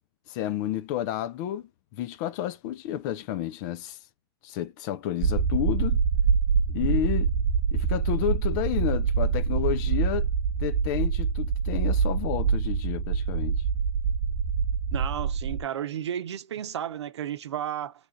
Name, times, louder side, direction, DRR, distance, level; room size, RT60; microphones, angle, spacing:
voice 1, 0.3-4.0 4.4-6.0 6.7-7.3 7.7-10.3 10.6-13.6, left 12 dB, 45° left, 0.4 m, -31 dB
sound 1, 5.2-15.6, right 6 dB, 35° right, 1.2 m, -25 dB
voice 2, 14.9-17.9, right 10 dB, 90° right, 0.6 m, -33 dB
3.3 x 2.4 x 4.0 m
hypercardioid pair, 135°, 14 cm